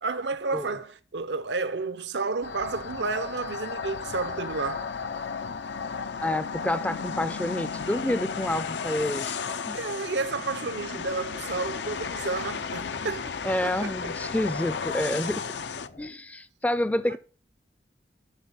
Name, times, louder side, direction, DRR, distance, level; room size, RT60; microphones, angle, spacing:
voice 1, 0.0-4.9 9.7-13.3 13.6-13.9 17.1-17.2, right 4 dB, 80° right, 0.7 m, -31 dB
sound 1, 2.4-15.9, left 5 dB, 85° left, 0.6 m, -34 dB
voice 2, 6.2-9.4 9.7-9.8 13.4-15.4 16.0-17.2, left 1 dB, 10° left, 0.4 m, -28 dB
sound 2, 10.9-16.1, left 2 dB, 50° left, 0.9 m, -50 dB
12.5 x 4.2 x 8.0 m
head